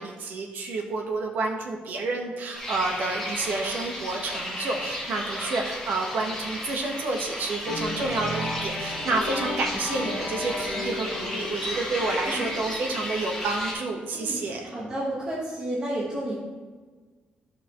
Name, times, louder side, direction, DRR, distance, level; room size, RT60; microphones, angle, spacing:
voice 1, 0.0-14.7, right 3 dB, 65° right, 2 dB, 1.3 m, -29 dB
sound 1, 2.5-13.7, left 1 dB, 5° left, 2.0 m, -34 dB
sound 2, 7.7-13.1, left 2 dB, 35° left, 1.5 m, -35 dB
voice 2, 14.1-16.3, right 1 dB, 30° right, -6 dB, 1.4 m, -31 dB
12.5 x 5.9 x 3.1 m, 1.4 s
wide cardioid pair, 180°, 3 cm